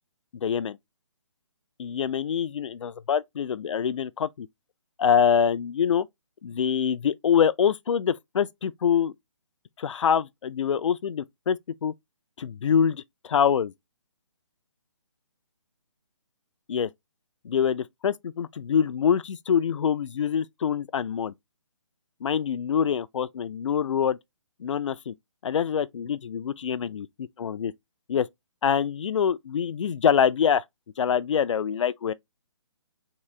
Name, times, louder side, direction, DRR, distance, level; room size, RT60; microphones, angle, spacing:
voice 1, 0.3-0.8 1.8-4.5 5.0-6.1 6.4-9.1 9.8-11.9 12.4-13.7 16.7-16.9 17.4-21.3 22.2-24.2 24.6-25.1 25.4-27.7 28.1-28.3 28.6-30.6 31.0-32.1, left 7 dB, 75° left, 0.4 m, -25 dB
3.8 x 2.7 x 3.1 m
hypercardioid pair, 165°, 16 cm